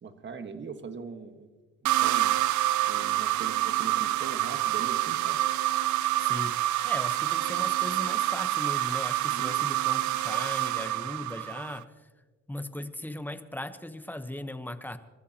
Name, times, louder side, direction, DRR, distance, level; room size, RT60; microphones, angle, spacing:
voice 1, 0.0-1.5 1.9-2.3 2.9-5.4 9.3-9.6, right 5 dB, 40° right, 7 dB, 1.6 m, -41 dB
sound 1, 1.8-11.8, right 14 dB, 70° right, 0.6 m, -27 dB
voice 2, 6.2-6.6 6.8-12.1 12.5-15.0, left 1 dB, 5° left, 9 dB, 1.1 m, -38 dB
27.5 x 14.0 x 3.0 m, 1.3 s
cardioid pair, 90°, 30 cm